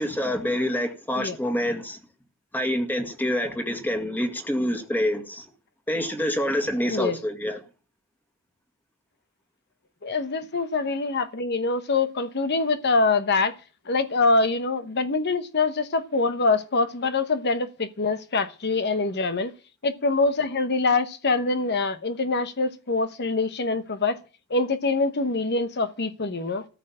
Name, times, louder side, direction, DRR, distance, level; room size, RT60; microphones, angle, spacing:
voice 1, 0.0-2.0 2.5-5.5 5.9-7.6, equal, 10° left, 2.0 m, -26 dB
voice 2, 10.0-13.5 13.9-19.5 19.8-24.2 24.5-26.7, left 3 dB, 50° left, 1.0 m, -24 dB
13.5 x 6.6 x 8.7 m
head